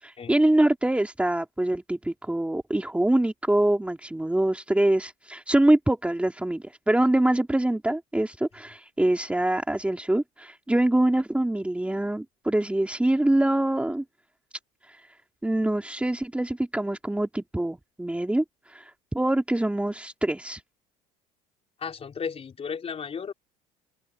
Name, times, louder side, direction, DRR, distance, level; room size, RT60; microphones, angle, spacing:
voice 1, 0.0-14.0 14.9-15.0 15.4-20.6, right 1 dB, 5° right, 3.4 m, -24 dB
voice 2, 21.8-23.3, left 6 dB, 35° left, 4.0 m, -34 dB
open air
hypercardioid pair, 80°, 18 cm